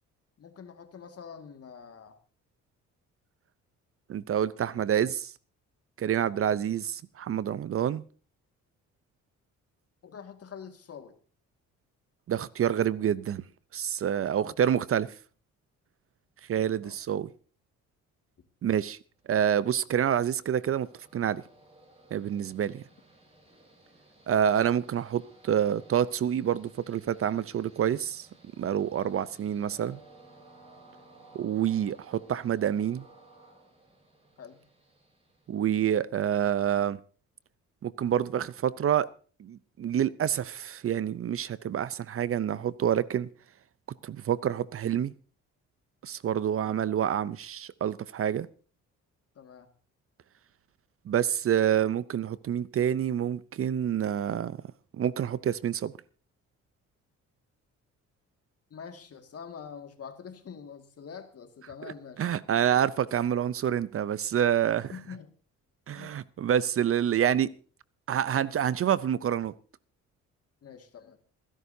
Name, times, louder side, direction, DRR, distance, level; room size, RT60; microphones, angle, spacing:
voice 1, 0.4-2.2 4.6-4.7 10.0-11.2 14.1-14.5 16.8-17.0 34.4-34.6 49.4-49.7 58.7-62.3 64.8-65.3 65.9-66.2 70.6-71.2, left 6 dB, 50° left, 2.0 m, -45 dB
voice 2, 4.1-5.3 6.0-8.0 12.3-13.4 13.7-15.1 16.5-17.3 18.6-19.0 19.3-20.9 21.1-21.4 22.1-22.8 24.3-28.3 28.6-30.0 31.3-33.0 35.5-37.0 37.8-39.1 39.4-43.3 44.0-45.1 46.0-48.5 51.1-54.6 55.0-55.9 61.8-61.9 62.2-64.9 65.9-67.5 68.1-69.5, right 9 dB, 50° right, 0.6 m, -27 dB
Train, 19.3-36.0, right 2 dB, 20° right, 5.0 m, -58 dB
26.5 x 11.0 x 2.7 m
cardioid pair, 90°, 30 cm